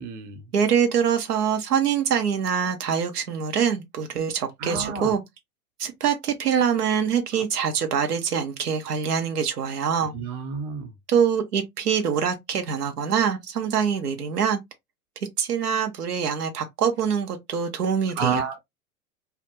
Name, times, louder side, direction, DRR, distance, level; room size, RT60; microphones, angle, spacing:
voice 1, 0.0-0.4 4.6-5.1 10.1-10.9 18.2-18.6, right 6 dB, 55° right, 0.8 m, -29 dB
voice 2, 0.5-5.2 5.8-10.1 11.1-14.6 15.4-18.5, right 7 dB, 90° right, 0.6 m, -24 dB
2.2 x 2.0 x 2.8 m
hypercardioid pair, 95°, 45 cm